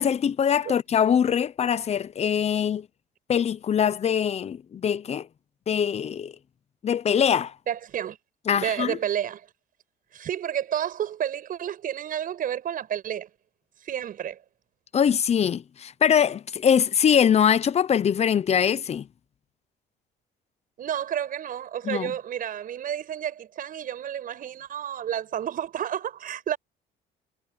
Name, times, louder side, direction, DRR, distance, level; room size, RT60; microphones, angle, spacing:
voice 1, 0.0-2.9 3.3-5.3 5.7-6.3 6.8-7.5 8.5-9.0 14.9-19.1 21.8-22.1, left 8 dB, 40° left, 0.9 m, -23 dB
voice 2, 7.7-8.2 8.5-9.5 10.1-13.3 13.8-14.4 20.8-26.6, right 10 dB, 55° right, 6.9 m, -30 dB
cardioid pair, 110°, 17 cm